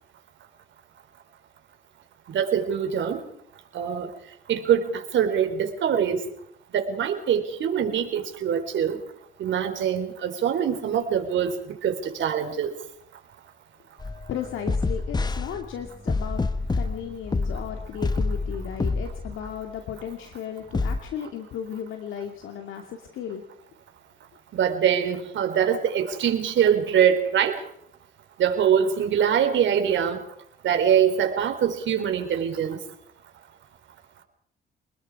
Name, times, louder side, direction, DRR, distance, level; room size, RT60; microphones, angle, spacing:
voice 1, 2.3-3.2 3.7-4.1 4.5-6.3 6.7-9.0 9.4-11.6 11.8-12.7 24.5-27.6 28.4-30.2 30.6-32.8, right 8 dB, 70° right, 6 dB, 4.0 m, -23 dB
sound 1, 14.0-19.6 20.7-21.0, left 3 dB, 20° left, 1.0 m, -28 dB
voice 2, 14.3-16.4 16.7-23.4, left 8 dB, 80° left, 4 dB, 2.5 m, -35 dB
27.5 x 20.5 x 4.9 m, 0.69 s
cardioid pair, 90°, 20 cm